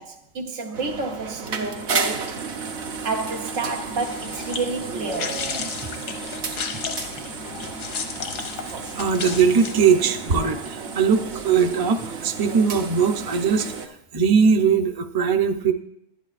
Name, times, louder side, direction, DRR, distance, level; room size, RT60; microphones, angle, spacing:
voice 1, 0.0-2.4 3.0-5.5, right 3 dB, 90° right, 1.4 m, -30 dB
sound 1, 0.7-13.9, right 4 dB, 60° right, 1.0 m, -32 dB
sound 2, 3.9-10.1, left 6 dB, 90° left, 1.2 m, -34 dB
voice 2, 9.0-13.7 14.1-15.7, right 6 dB, 30° right, 0.4 m, -20 dB
11.0 x 11.0 x 2.5 m
omnidirectional pair, 1.3 m